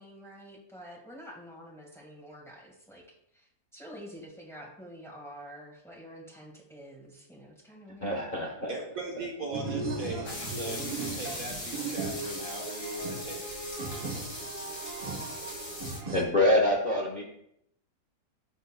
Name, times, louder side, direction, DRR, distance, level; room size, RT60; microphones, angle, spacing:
voice 1, 0.0-3.0 3.3-3.5 3.7-8.3, equal, ahead, -1 dB, 1.4 m, -48 dB
voice 2, 8.0-8.7 16.1-17.2, left 1 dB, 35° left, -1 dB, 0.8 m, -25 dB
voice 3, 8.7-13.5, right 3 dB, 55° right, 0 dB, 1.3 m, -39 dB
sound 1, 9.5-16.2, right 3 dB, 35° right, 0.6 m, -37 dB
sound 2, 10.2-16.0, left 1 dB, 65° left, 3.4 m, -40 dB
11.5 x 5.2 x 2.2 m, 0.74 s
omnidirectional pair, 1.9 m